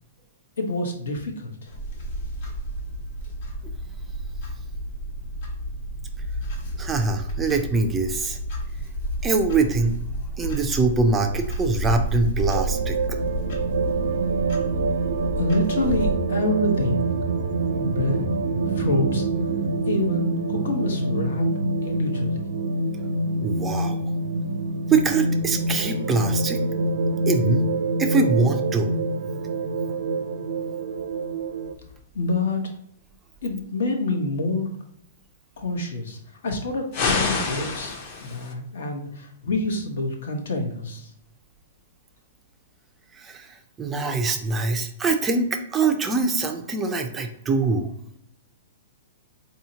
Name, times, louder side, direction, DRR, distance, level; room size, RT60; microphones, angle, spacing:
voice 1, 0.6-1.7 15.4-17.0 17.7-18.3 18.6-19.3 19.9-21.4 21.8-22.4 32.1-32.6 33.4-34.7 35.6-38.0 38.2-41.1, left 2 dB, 75° left, 3 dB, 1.0 m, -27 dB
Clock, 1.7-16.1, right 1 dB, 50° left, 1.1 m, -31 dB
voice 2, 6.8-8.4 9.2-10.0 10.4-13.0 23.4-24.0 24.9-26.6 27.3-27.7 28.0-28.9 43.1-47.9, right 4 dB, 10° right, 5 dB, 0.3 m, -23 dB
sound 1, 12.5-31.7, right 3 dB, 75° right, 0.4 m, -26 dB
sound 2, 36.9-38.5, left 4 dB, 35° left, 0.6 m, -26 dB
4.1 x 2.8 x 2.7 m, 0.73 s
hypercardioid pair, 165°, 0 cm